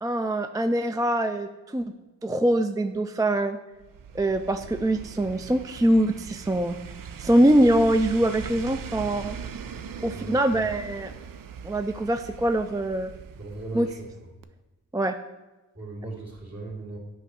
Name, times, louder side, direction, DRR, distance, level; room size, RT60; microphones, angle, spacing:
voice 1, 0.0-1.9 2.2-3.6 4.1-6.8 7.2-9.4 10.0-11.1 11.6-13.1 13.7-13.9 14.9-15.2, right 1 dB, 10° right, 8 dB, 0.3 m, -23 dB
sound 1, 3.8-14.2 14.4-14.5, right 7 dB, 80° right, 0.5 m, -40 dB
voice 2, 10.1-10.5 13.4-14.1 15.7-17.0, right 3 dB, 50° right, -4 dB, 2.4 m, -38 dB
8.2 x 3.1 x 6.0 m, 1.1 s
cardioid pair, 40°, 33 cm